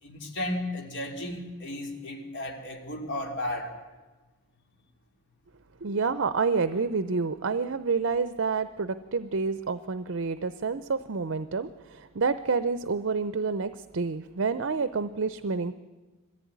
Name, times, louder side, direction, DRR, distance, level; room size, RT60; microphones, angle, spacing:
voice 1, 0.0-3.7, left 1 dB, 55° left, 1 dB, 3.1 m, -34 dB
voice 2, 5.8-15.7, right 4 dB, 60° right, 12 dB, 0.6 m, -28 dB
22.0 x 15.0 x 9.5 m, 1.2 s
head